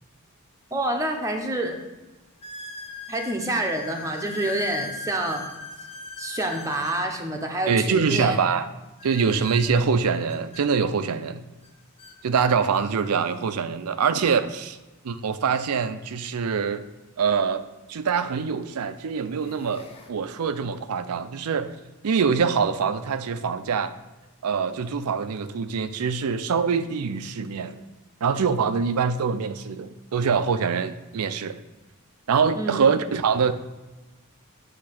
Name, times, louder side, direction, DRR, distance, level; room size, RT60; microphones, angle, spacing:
sound 1, 0.7-0.8 1.4-1.5 2.4-7.1 9.0-10.6 11.6-11.7 12.0-12.2 13.0-13.1 15.3-15.4 17.5-17.6 18.3-18.6 19.1-20.1, left 4 dB, 25° left, 0.7 m, -39 dB
voice 1, 0.7-1.8 3.1-5.4 6.2-8.4 32.5-33.0, right 1 dB, 15° right, 0.8 m, -27 dB
voice 2, 7.7-8.7 9.0-11.4 12.2-14.8 15.0-16.8 17.2-17.6 17.9-21.8 22.0-23.9 24.4-27.8 28.2-31.6 32.3-33.5, right 6 dB, 85° right, 0.5 m, -24 dB
8.4 x 2.9 x 5.8 m
head